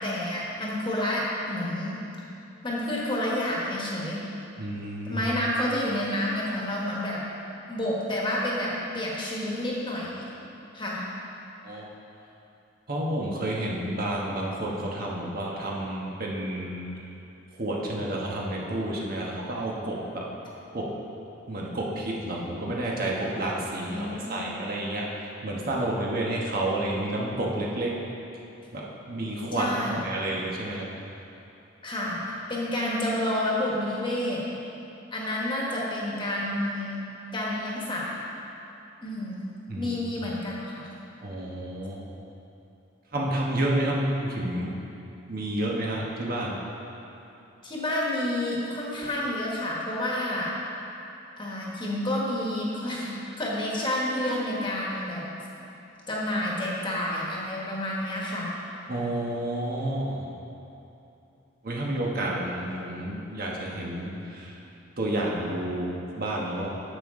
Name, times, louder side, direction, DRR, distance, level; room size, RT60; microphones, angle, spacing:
voice 1, 0.0-2.0 2.6-4.2 5.1-7.2 7.7-10.3 10.7-11.0 23.9-24.5 29.5-30.0 31.8-34.4 35.1-37.0 37.3-38.1 39.0-39.4 39.7-40.9 47.6-50.5 51.4-55.2 56.1-58.5, left 1 dB, 25° left, -4 dB, 1.4 m, -29 dB
voice 2, 4.6-5.2 11.6-11.9 12.9-16.9 17.6-20.2 20.7-20.9 21.5-25.1 25.4-27.9 28.7-30.9 39.7-39.9 41.2-42.0 43.1-44.7 45.3-46.6 58.9-60.3 61.6-64.5 65.0-66.8, right 1 dB, 50° right, -3 dB, 1.1 m, -30 dB
9.9 x 7.2 x 3.7 m, 2.9 s
head